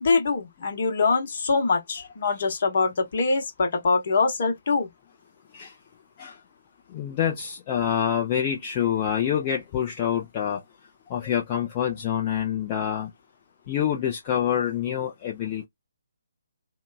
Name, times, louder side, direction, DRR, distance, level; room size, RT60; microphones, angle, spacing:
voice 1, 0.0-4.9, left 4 dB, 50° left, 1.1 m, -24 dB
voice 2, 6.9-10.6 11.1-13.1 13.7-15.7, left 9 dB, 30° left, 0.6 m, -26 dB
2.8 x 2.2 x 2.3 m
figure-of-eight pair, 140°, 0 cm